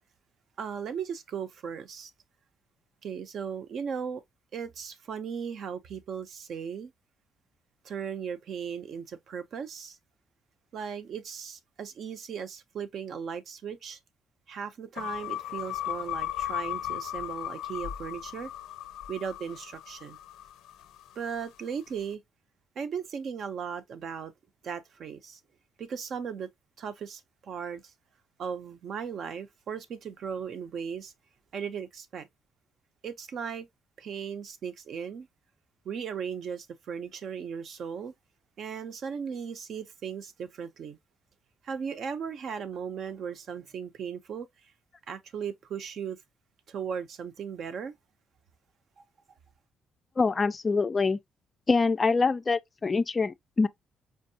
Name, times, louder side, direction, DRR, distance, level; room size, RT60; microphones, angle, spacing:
voice 1, 0.6-2.1 3.0-4.2 4.5-6.9 7.8-10.0 10.7-14.0 14.5-18.5 19.1-20.2 21.2-22.2 22.8-24.3 24.6-25.4 25.8-26.5 26.8-27.8 28.4-31.1 31.5-32.3 33.0-33.7 34.0-35.3 35.8-38.1 38.6-41.0 41.6-44.5 45.1-46.2 46.7-47.9, right 7 dB, 60° right, 0.6 m, -37 dB
sound 1, 15.0-21.3, left 12 dB, 90° left, 0.4 m, -36 dB
voice 2, 50.2-51.2 51.7-53.7, left 4 dB, 30° left, 0.3 m, -25 dB
4.5 x 2.5 x 2.6 m
cardioid pair, 110°, 0 cm